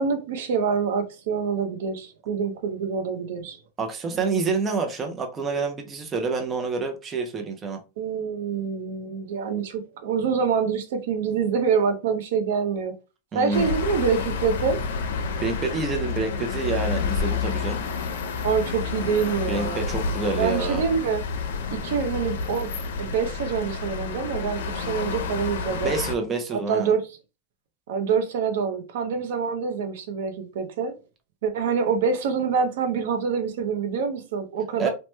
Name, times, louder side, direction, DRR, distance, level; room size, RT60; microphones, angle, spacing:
voice 1, 0.0-3.6 8.0-12.9 13.3-14.8 18.4-19.8 20.4-21.2 21.7-22.7 23.0-26.0 26.5-27.1 27.9-31.0 31.4-34.9, right 6 dB, 70° right, 0.6 m, -26 dB
voice 2, 3.8-7.8 13.3-13.7 15.4-17.8 19.5-20.8 25.8-26.9 34.8-34.9, right 4 dB, 20° right, 0.4 m, -27 dB
sound 1, 13.5-26.1, left 5 dB, 85° left, 0.6 m, -29 dB
3.0 x 2.1 x 3.1 m
supercardioid pair, 165°, 0 cm